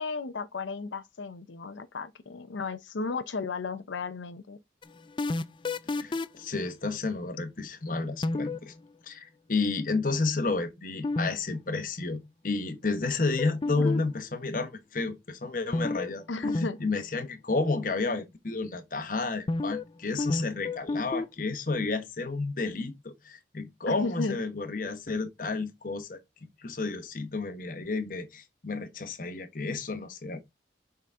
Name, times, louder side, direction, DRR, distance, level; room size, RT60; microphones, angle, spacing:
voice 1, 0.0-4.6 13.7-14.0 16.3-16.8 23.9-24.4, left 4 dB, 90° left, 0.6 m, -34 dB
sound 1, 4.8-6.5 8.2-8.6 11.0-11.3 11.5-11.6 13.4-14.2 15.7-16.1 16.4-16.7 16.9-17.0 19.5-19.9 20.2-21.3, left 2 dB, 25° left, 0.3 m, -29 dB
voice 2, 5.9-8.7 9.1-16.2 16.6-26.2 26.6-30.4, left 3 dB, 45° left, 1.0 m, -31 dB
6.7 x 3.9 x 3.6 m
head